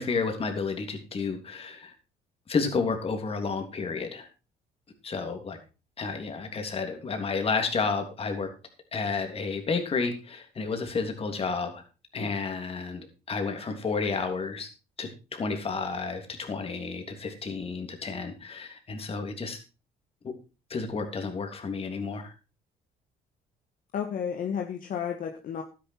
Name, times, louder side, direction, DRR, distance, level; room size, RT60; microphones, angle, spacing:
voice 1, 0.0-1.9 2.5-4.3 5.0-5.6 6.0-8.5 8.9-11.8 12.1-14.7 15.0-19.6 20.7-22.3, left 4 dB, 35° left, 5 dB, 3.2 m, -31 dB
voice 2, 23.9-25.6, left 8 dB, 55° left, 3 dB, 1.7 m, -32 dB
12.5 x 10.5 x 4.6 m, 0.32 s
cardioid pair, 110°, 17 cm